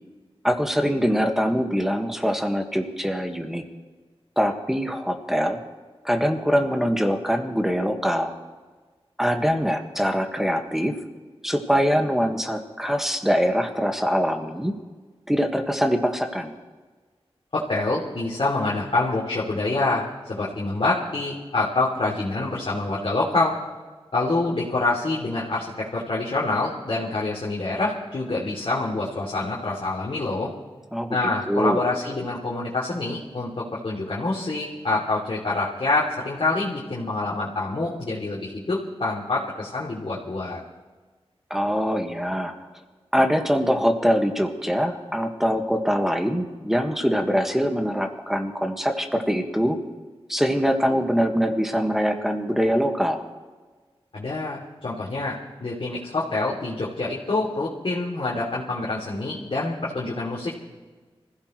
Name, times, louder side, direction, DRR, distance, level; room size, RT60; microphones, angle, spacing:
voice 1, 0.4-3.6 4.4-5.6 6.0-8.3 9.2-11.0 11.4-14.7 15.3-16.5 30.9-31.8 41.5-42.5 43.1-49.8 50.3-53.2, equal, 5° right, 4 dB, 1.7 m, -23 dB
voice 2, 17.5-23.6 24.1-30.5 31.1-40.6 54.1-60.6, left 2 dB, 60° left, -6 dB, 3.0 m, -26 dB
26.0 x 16.0 x 3.2 m, 1.3 s
wide cardioid pair, 85°, 10 cm